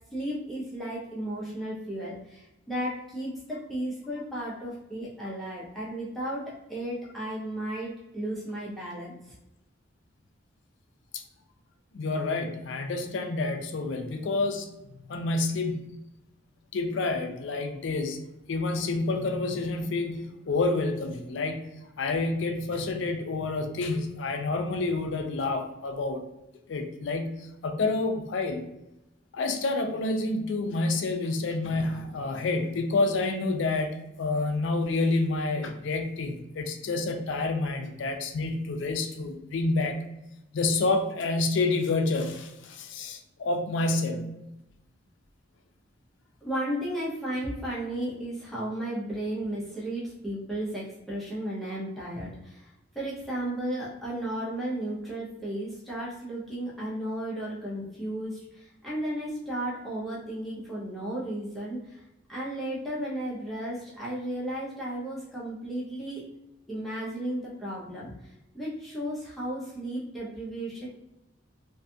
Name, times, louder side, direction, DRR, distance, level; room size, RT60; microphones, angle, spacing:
voice 1, 0.1-9.3 46.4-62.0 62.3-66.2 66.7-70.9, right 1 dB, ahead, -8 dB, 0.5 m, -34 dB
voice 2, 11.9-14.7 15.1-15.8 16.7-18.2 18.5-21.6 22.0-26.2 26.7-28.6 29.3-40.0 40.5-44.3, left 3 dB, 70° left, 5 dB, 0.4 m, -28 dB
2.5 x 2.3 x 2.6 m, 0.92 s
head